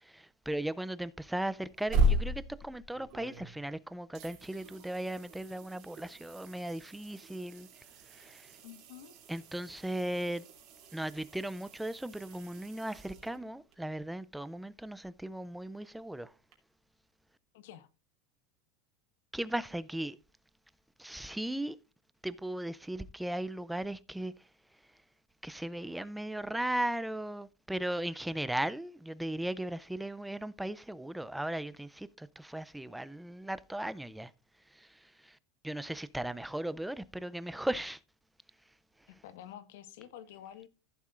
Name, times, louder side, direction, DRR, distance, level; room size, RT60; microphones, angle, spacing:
voice 1, 0.0-7.7 8.1-8.5 9.3-10.4 10.9-16.3 19.3-20.2 21.0-21.8 22.2-24.3 25.4-34.3 34.7-35.4 35.6-38.0, right 1 dB, 5° right, 0.4 m, -37 dB
sound 1, 1.6-3.8 4.1-13.7 16.5-16.6, right 1 dB, 40° right, 2.9 m, -37 dB
voice 2, 8.6-9.2 17.5-17.9 39.1-40.7, left 11 dB, 70° left, 1.3 m, -49 dB
15.0 x 7.3 x 2.4 m
supercardioid pair, 170°, 0 cm